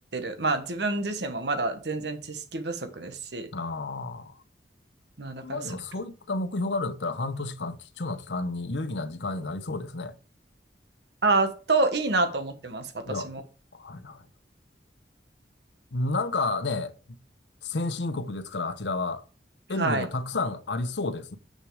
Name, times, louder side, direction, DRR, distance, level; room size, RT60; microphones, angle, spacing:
voice 1, 0.1-3.5 5.2-5.6 11.2-13.4 19.8-20.1, right 3 dB, 75° right, 1.3 m, -27 dB
voice 2, 3.5-4.3 5.4-10.1 13.1-13.3 13.7-14.2 15.9-16.9 17.6-19.2 19.7-21.4, left 3 dB, 85° left, 0.9 m, -31 dB
7.4 x 6.4 x 4.8 m
head